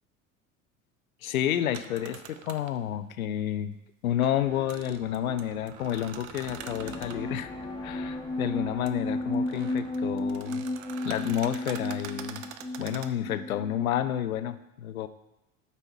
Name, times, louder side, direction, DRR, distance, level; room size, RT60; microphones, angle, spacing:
voice 1, 1.2-3.7 4.0-7.5 7.8-10.7 11.0-12.4 12.8-15.1, left 11 dB, 85° left, 12 dB, 0.6 m, -30 dB
sound 1, 1.7-2.8 4.2-7.2 8.9-9.0 9.3-13.1, right 10 dB, 60° right, 0.8 m, -45 dB
sound 2, 4.4-10.3, equal, 25° right, 2.0 m, -52 dB
sound 3, 6.4-14.0, left 2 dB, 10° left, 1.4 m, -34 dB
8.3 x 5.5 x 4.6 m, 0.96 s
hypercardioid pair, 75°, 41 cm